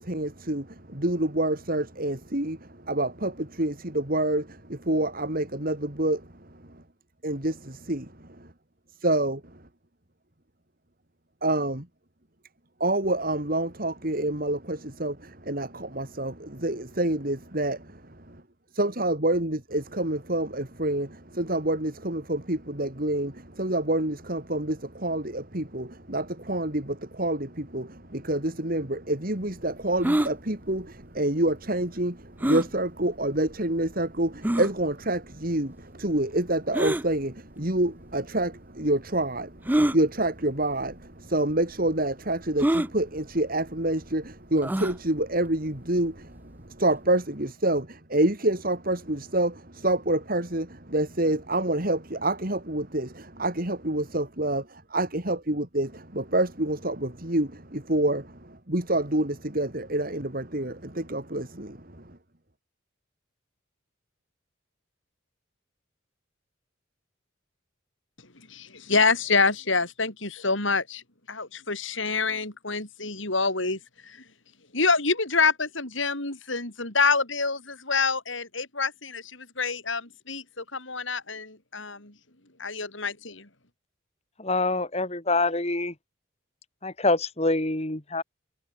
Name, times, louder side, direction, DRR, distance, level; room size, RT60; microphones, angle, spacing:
voice 1, 0.0-6.3 6.7-6.8 7.2-8.5 9.0-9.4 11.4-11.9 12.8-18.4 18.7-62.0, right 1 dB, 45° right, 3.3 m, -27 dB
sound 1, 30.0-30.3 32.4-32.7 33.5-33.6 34.4-34.7 36.7-37.0 38.1-38.2 39.6-40.0 40.9-41.0 41.3-41.4 42.6-42.9 44.6-45.0, right 1 dB, 10° right, 0.5 m, -24 dB
voice 2, 68.5-71.0 71.3-74.2 74.7-82.1 82.6-83.5, left 4 dB, 70° left, 7.0 m, -27 dB
voice 3, 84.4-85.9 86.8-88.2, left 2 dB, 30° left, 2.6 m, -25 dB
head